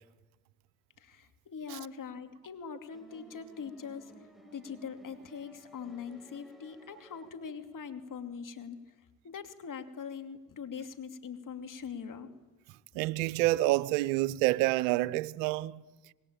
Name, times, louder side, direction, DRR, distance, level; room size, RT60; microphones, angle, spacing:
voice 1, 1.0-4.1 4.5-8.8 9.2-12.3 15.9-16.0, left 6 dB, 50° left, 3.0 m, -42 dB
sound 1, 2.9-7.8, right 2 dB, ahead, 7.5 m, -57 dB
voice 2, 12.9-15.8, right 18 dB, 85° right, 0.8 m, -28 dB
26.0 x 20.5 x 8.9 m
hypercardioid pair, 55°, 40 cm